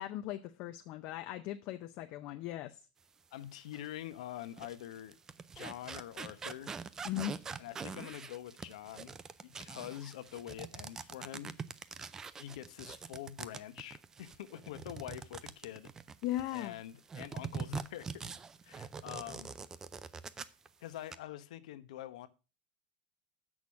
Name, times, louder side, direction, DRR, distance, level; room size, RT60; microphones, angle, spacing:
voice 1, 0.0-2.8 7.0-7.4 16.2-16.8, left 14 dB, 40° left, 0.6 m, -38 dB
voice 2, 3.3-5.2 5.5-6.7 7.6-9.2 9.4-11.5 12.4-15.9 16.5-18.2 18.6-19.5 20.8-22.3, left 12 dB, 80° left, 0.9 m, -45 dB
sound 1, 3.7-3.9 4.4-16.7 17.1-20.7 20.9-21.2, right 5 dB, 15° right, 0.4 m, -44 dB
7.1 x 6.2 x 6.2 m
supercardioid pair, 165°, 4 cm